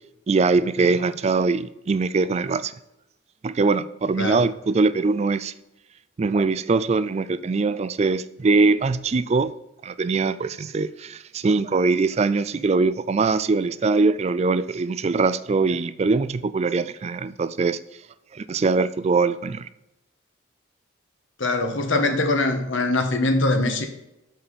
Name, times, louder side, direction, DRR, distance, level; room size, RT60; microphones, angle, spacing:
voice 1, 0.3-2.7 3.4-5.5 6.2-9.5 9.8-17.8 18.3-19.7, right 4 dB, 35° right, 0.3 m, -22 dB
voice 2, 21.4-23.9, left 2 dB, 70° left, 1.2 m, -22 dB
7.1 x 5.5 x 4.1 m
head